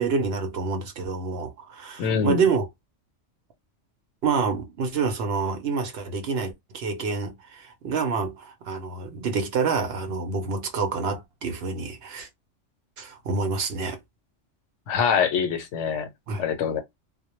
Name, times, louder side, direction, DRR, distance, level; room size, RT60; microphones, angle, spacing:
voice 1, 0.0-2.7 4.2-12.3 13.0-14.0 16.3-16.5, right 5 dB, 65° right, 0.8 m, -27 dB
voice 2, 2.0-2.4 14.9-16.1 16.4-16.8, left 6 dB, 75° left, 1.0 m, -24 dB
2.2 x 2.1 x 2.9 m
omnidirectional pair, 1.3 m